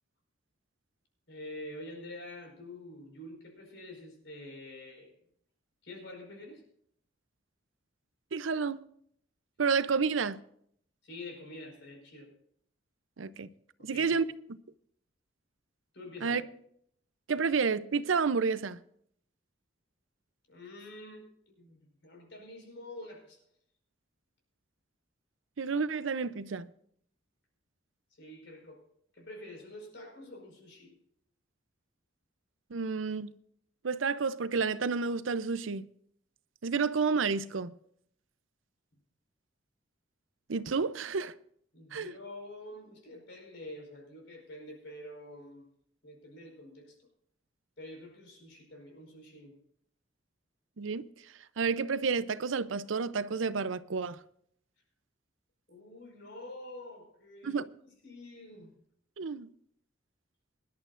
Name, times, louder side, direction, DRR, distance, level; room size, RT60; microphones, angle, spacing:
voice 1, 1.3-5.2 5.8-6.6 11.0-12.3 13.8-14.2 15.9-16.4 20.5-23.4 28.2-28.8 29.1-31.0 41.7-45.6 46.0-47.0 47.8-49.5 55.7-57.6 58.0-58.7, left 1 dB, 65° left, 5.0 m, -47 dB
voice 2, 8.3-8.8 9.6-10.4 13.2-13.5 13.8-14.2 16.2-16.4 17.3-18.8 25.6-26.7 32.7-33.3 33.8-35.9 36.6-37.7 40.5-41.3 41.9-42.1 50.8-51.1 51.6-54.2 57.4-57.6 59.2-59.5, right 5 dB, 90° right, 0.6 m, -30 dB
23.5 x 11.5 x 2.5 m
head